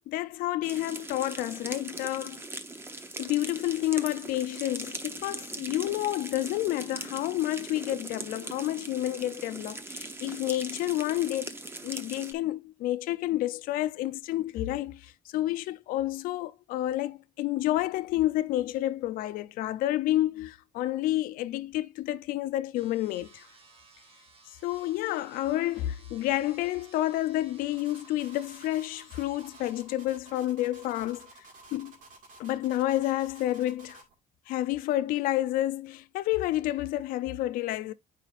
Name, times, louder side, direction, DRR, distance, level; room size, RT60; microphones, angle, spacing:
voice 1, 0.1-2.4 3.2-11.6 11.8-23.5 24.6-31.3 31.7-31.9 32.4-34.0 34.5-37.9, left 15 dB, 90° left, 0.5 m, -30 dB
sound 1, 0.6-12.3, right 2 dB, 15° right, 0.7 m, -40 dB
sound 2, 22.8-29.8, right 4 dB, 40° right, 1.2 m, -57 dB
sound 3, 27.7-34.1, right 2 dB, 70° right, 1.9 m, -52 dB
8.9 x 4.9 x 2.4 m
cardioid pair, 110°, 14 cm